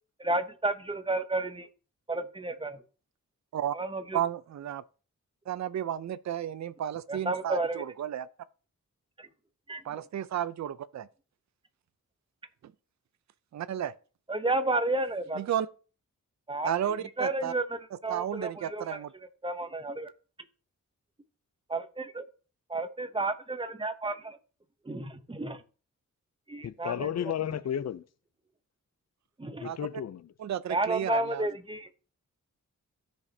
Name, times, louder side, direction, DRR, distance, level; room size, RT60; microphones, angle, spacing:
voice 1, 0.2-1.7 2.1-2.8 3.7-4.2 7.1-7.9 9.2-9.3 9.7-10.0 14.3-15.5 16.5-16.7 17.2-19.0 19.4-20.1 21.7-22.0 22.7-24.4 24.8-25.6 26.5-27.3 29.4-29.7 30.7-31.9, right 2 dB, 15° right, 0.7 m, -32 dB
voice 2, 4.1-4.8 5.5-8.3 9.8-11.1 13.5-13.9 15.4-15.7 16.6-17.5 18.1-19.1 29.6-29.8 30.4-31.4, right 10 dB, 60° right, 0.5 m, -32 dB
voice 3, 26.6-28.0 29.6-30.3, left 9 dB, 55° left, 0.5 m, -33 dB
13.5 x 5.2 x 2.7 m
wide cardioid pair, 125°, 32 cm